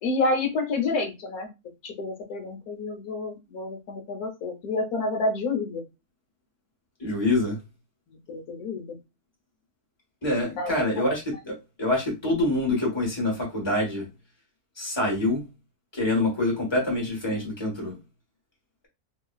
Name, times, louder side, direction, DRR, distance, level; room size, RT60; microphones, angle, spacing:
voice 1, 0.0-1.5 1.8-5.8 8.1-9.0 10.6-10.7, left 3 dB, 70° left, 1.3 m, -29 dB
voice 2, 7.0-7.6 10.2-14.1 14.8-15.4 15.9-17.9, left 2 dB, 20° left, 1.3 m, -26 dB
3.7 x 2.9 x 2.3 m
omnidirectional pair, 1.6 m